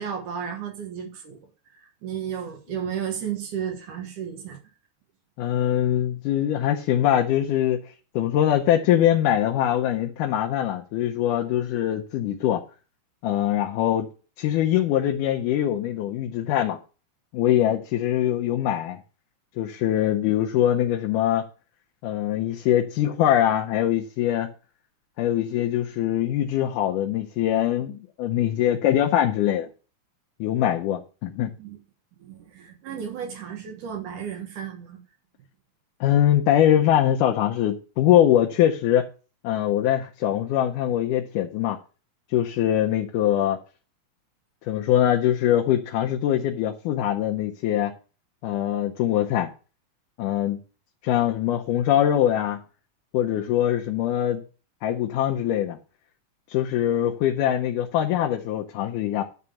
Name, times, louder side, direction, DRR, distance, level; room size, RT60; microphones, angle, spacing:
voice 1, 0.0-1.4 1.7-4.6 31.6-31.8 32.2-35.0, right 8 dB, 75° right, 2.8 m, -33 dB
voice 2, 5.4-7.8 8.2-12.6 13.2-14.1 14.4-16.8 17.3-19.0 19.6-21.5 22.0-24.5 25.2-29.7 30.4-31.5 36.0-39.1 39.4-41.8 42.3-43.6 44.7-47.9 48.4-49.5 50.2-50.6 51.0-52.6 53.1-54.4 54.8-55.8 56.5-59.2, left 11 dB, 80° left, 2.2 m, -23 dB
11.0 x 3.7 x 7.0 m
omnidirectional pair, 3.8 m